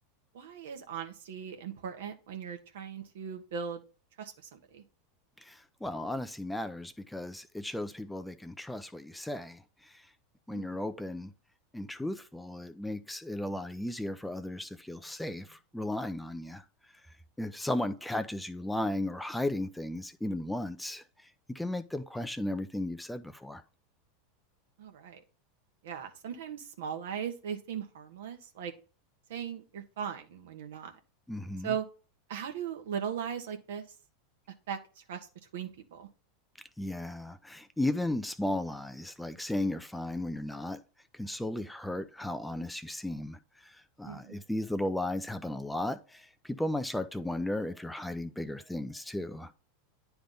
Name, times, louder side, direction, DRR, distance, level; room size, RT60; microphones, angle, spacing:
voice 1, 0.3-3.8 4.2-4.8 10.5-10.7 24.8-25.2 25.8-28.7 29.3-30.9 31.6-31.8 32.3-33.8 34.7-34.8 35.1-35.2 35.5-36.1 44.0-44.3, right 8 dB, 70° right, 1.2 m, -38 dB
voice 2, 5.4-10.0 10.5-11.3 11.7-16.6 17.4-21.0 21.5-23.6 31.3-31.7 36.8-40.8 41.1-49.5, left 1 dB, 5° left, 0.5 m, -35 dB
10.0 x 3.5 x 3.8 m
hypercardioid pair, 95°, 0 cm